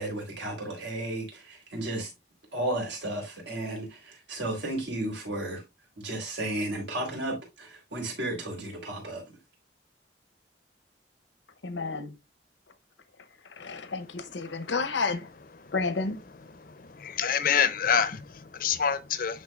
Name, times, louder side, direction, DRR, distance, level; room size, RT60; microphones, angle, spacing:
voice 1, 0.0-2.1 2.5-5.6 6.0-9.2, right 1 dB, 80° right, 3.6 m, -33 dB
voice 2, 11.6-12.1 13.4-15.3 15.7-16.2, left 4 dB, 85° left, 0.8 m, -31 dB
voice 3, 16.6-19.4, left 7 dB, 50° left, 0.6 m, -27 dB
11.0 x 3.7 x 2.4 m
head